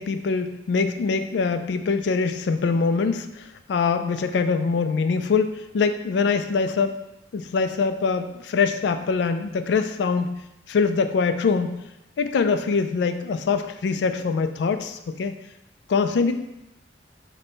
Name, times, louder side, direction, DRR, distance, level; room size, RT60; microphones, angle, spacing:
voice 1, 0.0-7.0 7.3-11.9 12.2-15.4 15.9-16.3, left 5 dB, 70° left, 9 dB, 0.3 m, -23 dB
5.2 x 2.2 x 3.9 m, 0.89 s
head